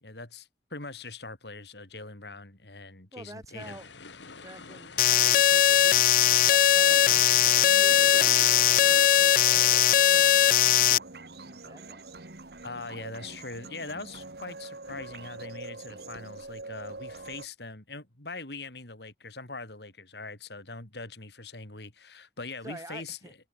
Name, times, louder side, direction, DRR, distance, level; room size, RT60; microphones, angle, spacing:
voice 1, 0.0-3.8 12.6-23.3, left 3 dB, 70° left, 3.9 m, -42 dB
voice 2, 3.1-3.9 4.4-6.0 6.4-10.4 10.7-11.1 11.4-12.1 22.6-23.3, right 1 dB, 20° right, 5.3 m, -48 dB
sound 1, 3.6-9.1, left 4 dB, 90° left, 2.4 m, -46 dB
sound 2, 5.0-11.0, left 11 dB, 50° left, 0.4 m, -20 dB
sound 3, 6.2-17.5, right 2 dB, 60° right, 1.8 m, -44 dB
head